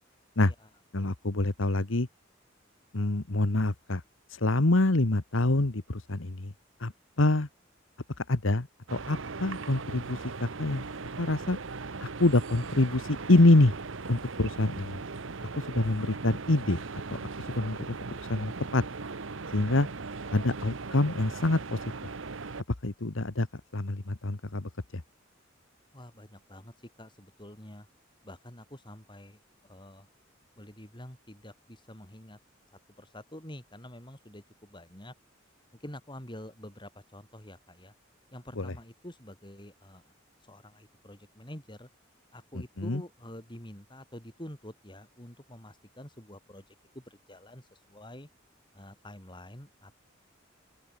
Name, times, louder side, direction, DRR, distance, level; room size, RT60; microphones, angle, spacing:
voice 1, 0.9-2.1 2.9-4.0 4.3-6.5 6.8-6.9 7.2-7.5 8.2-10.9 11.2-11.6 12.0-13.7 14.1-15.0 15.6-16.8 17.5-17.8 18.3-18.8 19.5-19.9 20.3-21.8 22.8-23.5 23.7-25.0 38.6-38.7 42.8-43.0, left 2 dB, 80° left, 1.4 m, -26 dB
sound 1, 8.9-22.6, right 4 dB, 75° right, 1.0 m, -39 dB
voice 2, 25.9-27.9 28.2-30.1 30.6-32.4 33.0-35.1 35.8-37.9 38.3-40.0 40.4-41.9 42.3-48.3 48.7-49.9, left 1 dB, 25° left, 7.1 m, -47 dB
open air
head